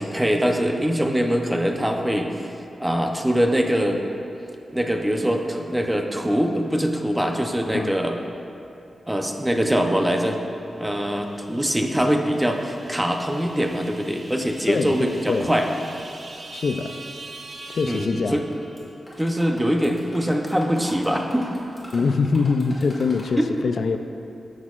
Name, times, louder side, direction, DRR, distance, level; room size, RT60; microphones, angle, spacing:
voice 1, 0.0-2.3 2.8-4.0 4.7-8.1 9.1-10.4 10.8-15.7 17.9-18.4 19.2-21.5 23.4-23.5, equal, 10° right, 3 dB, 0.6 m, -23 dB
sound 1, 11.0-19.0, right 2 dB, 45° right, 0.7 m, -43 dB
voice 2, 16.5-16.9 17.7-18.4 21.9-24.0, left 4 dB, 65° left, 7 dB, 0.3 m, -23 dB
sound 2, 18.2-18.8 19.1-23.3, equal, 10° left, 1.9 m, -42 dB
14.0 x 6.3 x 2.4 m, 2.7 s
wide cardioid pair, 135°, 0 cm